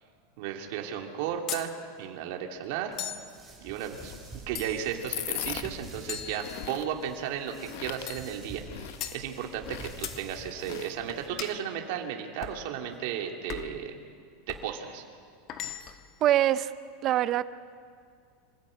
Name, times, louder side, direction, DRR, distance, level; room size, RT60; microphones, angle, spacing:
voice 1, 0.4-1.7 2.0-3.0 3.6-4.1 4.5-13.9 14.5-15.0, right 9 dB, 55° right, 2 dB, 2.4 m, -34 dB
sound 1, 1.5-1.7 3.0-3.3 4.6-5.0 6.1-7.0 8.1-8.3 9.0-9.2 10.0-10.2 11.4-11.6 12.4-12.6 13.5-13.8 14.5-14.7 15.5-16.1, left 10 dB, 35° left, 1.1 m, -38 dB
sound 2, 2.9-11.3, right 2 dB, 5° right, 4.5 m, -48 dB
sound 3, 3.9-11.4, left 14 dB, 60° left, 0.8 m, -41 dB
voice 2, 16.2-16.7 17.0-17.5, right 12 dB, 30° right, 15 dB, 0.5 m, -24 dB
25.5 x 16.0 x 8.6 m, 2.2 s
supercardioid pair, 165°, 0 cm